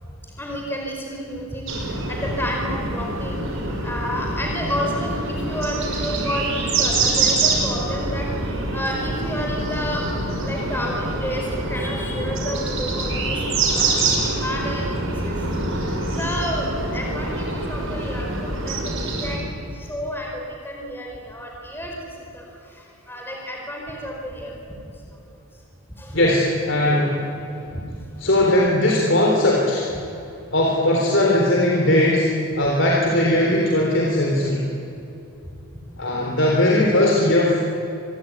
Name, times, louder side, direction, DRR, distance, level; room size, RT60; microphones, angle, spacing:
voice 1, 0.2-3.5 3.8-10.1 10.4-15.4 15.7-25.6 26.0-26.2 27.7-27.8 35.4-35.8, equal, 10° left, -1 dB, 4.6 m, -31 dB
sound 1, 1.7-19.4, right 2 dB, 65° right, 6.0 m, -25 dB
voice 2, 26.1-27.2 27.5-27.6 28.2-29.9 30.5-32.3 32.6-34.6 36.0-37.6, left 1 dB, 55° left, -2 dB, 3.8 m, -19 dB
27.0 x 22.0 x 9.7 m, 2.8 s
head